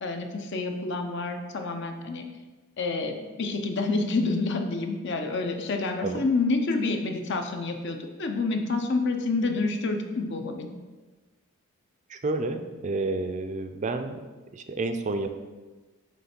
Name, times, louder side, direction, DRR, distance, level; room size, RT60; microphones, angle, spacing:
voice 1, 0.0-2.2 2.8-10.7, left 3 dB, 55° left, 5 dB, 0.6 m, -28 dB
voice 2, 12.1-14.2 14.5-15.3, right 3 dB, 35° right, 7 dB, 0.4 m, -30 dB
7.4 x 3.2 x 4.4 m, 1.3 s
head